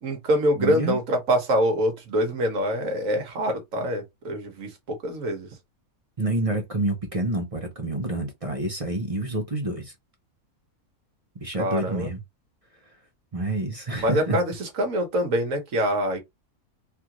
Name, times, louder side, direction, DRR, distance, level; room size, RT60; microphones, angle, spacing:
voice 1, 0.0-5.5 11.6-12.1 14.0-16.2, equal, 65° right, 1.4 m, -25 dB
voice 2, 0.6-1.0 6.2-9.9 11.4-12.2 13.3-14.4, right 2 dB, 35° right, 0.5 m, -28 dB
3.4 x 2.4 x 2.9 m
omnidirectional pair, 1.5 m